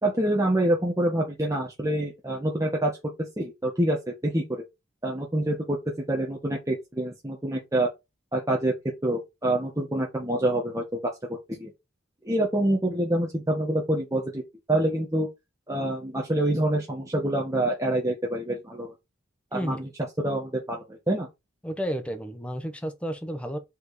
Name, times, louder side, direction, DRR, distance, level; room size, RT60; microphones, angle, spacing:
voice 1, 0.0-3.0 3.4-4.6 5.0-5.8 6.1-7.9 8.3-8.7 9.0-11.1 11.6-11.7 12.2-14.4 14.7-15.3 15.7-18.9 19.5-19.9 20.2-21.3, right 1 dB, 15° right, 1.3 m, -26 dB
voice 2, 21.6-23.6, equal, 5° left, 1.0 m, -32 dB
4.8 x 4.4 x 4.9 m
head